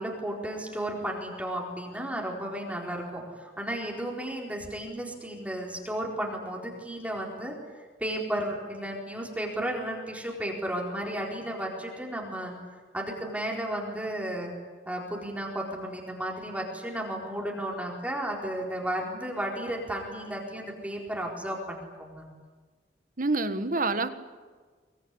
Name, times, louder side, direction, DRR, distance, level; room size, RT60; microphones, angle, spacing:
voice 1, 0.0-12.5 12.9-14.5 14.9-22.3, right 1 dB, 10° right, -1 dB, 4.3 m, -33 dB
voice 2, 23.2-24.1, right 3 dB, 50° right, 10 dB, 1.6 m, -27 dB
23.5 x 23.5 x 9.8 m, 1.5 s
head